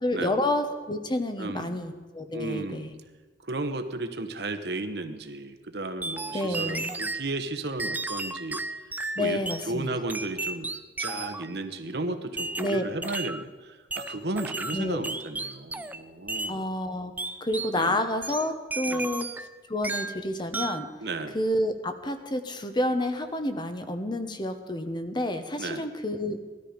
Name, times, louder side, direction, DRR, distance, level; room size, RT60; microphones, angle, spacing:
voice 1, 0.0-2.9 6.3-6.9 9.2-9.9 12.6-12.8 14.7-15.0 16.5-17.1 17.4-20.9 21.3-26.4, left 1 dB, 25° left, 7 dB, 1.1 m, -29 dB
voice 2, 1.4-1.8 2.3-2.9 3.4-8.6 9.2-10.7 11.0-16.6 17.7-18.0 18.9-19.1 21.0-21.4 25.6-25.9, right 2 dB, 65° right, 8 dB, 1.2 m, -34 dB
sound 1, 6.0-7.3 7.8-9.7 10.1-11.5 12.4-13.4 13.9-16.0 16.3-16.6 17.2-17.8 18.2-19.5 19.8-20.2 20.5-20.9, right 3 dB, 10° right, 0.5 m, -33 dB
18.5 x 13.0 x 5.2 m, 1.3 s
head